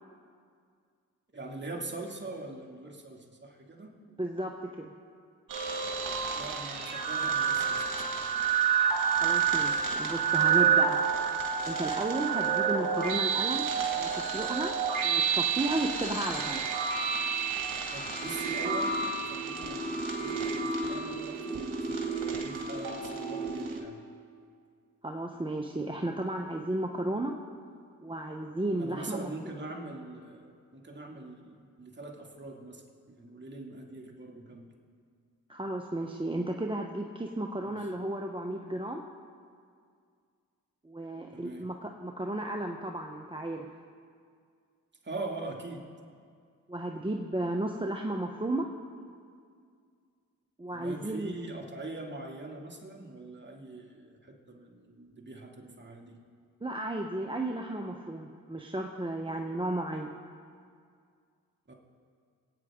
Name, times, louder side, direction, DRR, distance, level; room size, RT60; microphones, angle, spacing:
voice 1, 1.3-3.9 6.3-8.3 17.9-24.0 28.8-32.8 33.1-34.6 37.7-37.8 41.3-41.7 45.0-45.9 50.7-56.2 61.7-61.8, right 2 dB, 30° right, 0 dB, 2.5 m, -42 dB
voice 2, 4.2-4.9 9.2-11.0 11.6-13.7 14.0-14.7 15.0-16.7 25.0-27.3 28.0-29.3 35.5-39.0 40.8-43.7 46.7-48.7 50.6-51.4 56.6-60.1, right 1 dB, 15° right, 2 dB, 1.0 m, -33 dB
sound 1, 5.5-23.8, right 6 dB, 60° right, 2.2 m, -29 dB
24.0 x 9.1 x 3.7 m, 2.2 s
cardioid pair, 60°, 36 cm